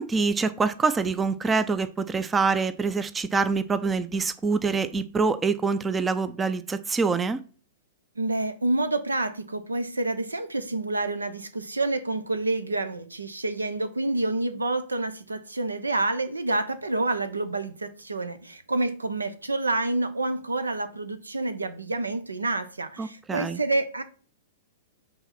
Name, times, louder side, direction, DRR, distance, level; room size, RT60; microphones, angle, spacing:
voice 1, 0.0-7.4 23.0-23.6, right 4 dB, 15° right, 0.5 m, -25 dB
voice 2, 8.2-24.0, right 2 dB, 90° right, 0.9 m, -28 dB
5.6 x 4.1 x 5.8 m
figure-of-eight pair, 110°, 0 cm